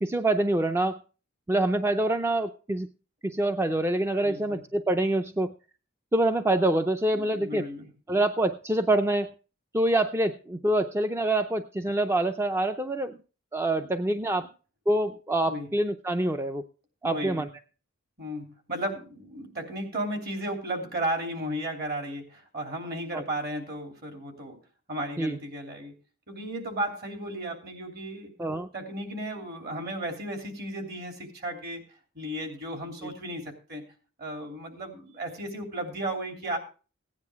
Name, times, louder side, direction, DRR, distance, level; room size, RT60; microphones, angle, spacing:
voice 1, 0.0-1.0 1.5-2.9 3.2-5.5 6.1-7.6 8.1-9.3 9.7-13.2 13.5-14.5 14.9-16.6 17.0-17.5 23.1-23.2 25.2-25.4 28.4-28.7, right 1 dB, 15° right, 8 dB, 0.5 m, -26 dB
voice 2, 4.2-4.6 7.2-7.9 15.4-15.7 17.0-17.5 18.2-24.6 24.9-25.9 26.3-28.3 28.7-31.8 32.1-33.8 34.2-36.6, right 1 dB, 55° right, 4 dB, 3.0 m, -34 dB
16.0 x 9.7 x 3.5 m, 0.35 s
head